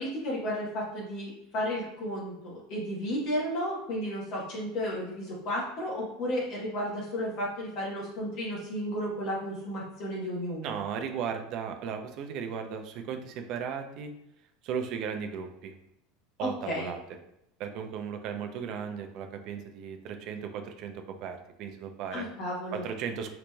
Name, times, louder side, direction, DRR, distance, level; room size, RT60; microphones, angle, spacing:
voice 1, 0.0-10.7 16.4-16.9 22.1-22.8, equal, 55° left, -4 dB, 1.0 m, -33 dB
voice 2, 10.6-14.1 14.6-15.7 16.4-17.0 17.6-22.3 22.7-23.3, right 7 dB, 55° right, 5 dB, 0.4 m, -36 dB
3.9 x 2.9 x 2.2 m, 0.82 s
hypercardioid pair, 95°, 0 cm